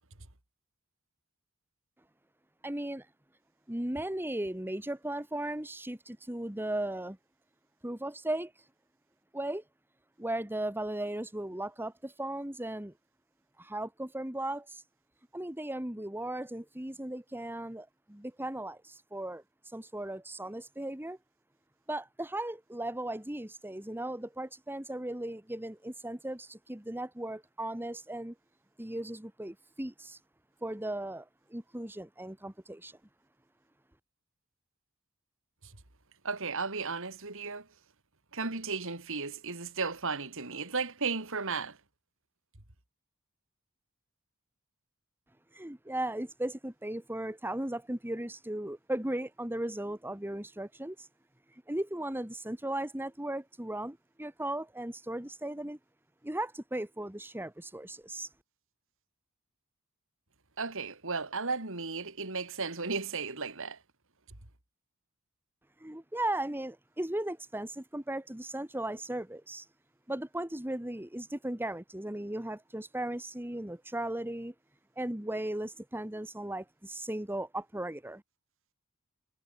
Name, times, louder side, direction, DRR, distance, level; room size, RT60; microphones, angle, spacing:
voice 1, 2.6-3.1 3.7-7.2 7.8-8.5 9.3-9.6 10.2-12.9 13.6-14.8 15.3-21.2 21.9-28.3 28.8-30.2 30.6-33.0 45.5-51.1 51.5-55.8 56.2-58.3 65.8-69.7 70.1-74.5 75.0-78.2, right 1 dB, 10° right, 1.6 m, -37 dB
voice 2, 36.2-37.6 38.3-41.8 60.6-63.8, right 4 dB, 65° right, 3.8 m, -34 dB
head